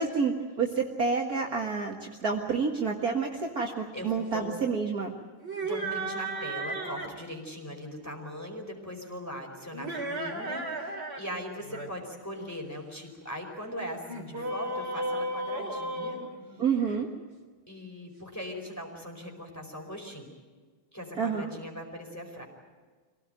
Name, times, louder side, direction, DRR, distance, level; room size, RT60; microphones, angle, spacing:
voice 1, 0.0-5.1 16.6-17.1 21.2-21.5, right 5 dB, 45° right, 0 dB, 2.1 m, -29 dB
voice 2, 3.9-4.5 5.6-16.2 17.7-20.3 20.9-22.4, equal, 5° left, 1 dB, 4.9 m, -40 dB
sound 1, 5.4-7.2 9.7-11.2 11.5-11.9 14.1-17.0, right 2 dB, 30° right, 3.3 m, -34 dB
25.5 x 18.0 x 9.2 m, 1.4 s
omnidirectional pair, 2.3 m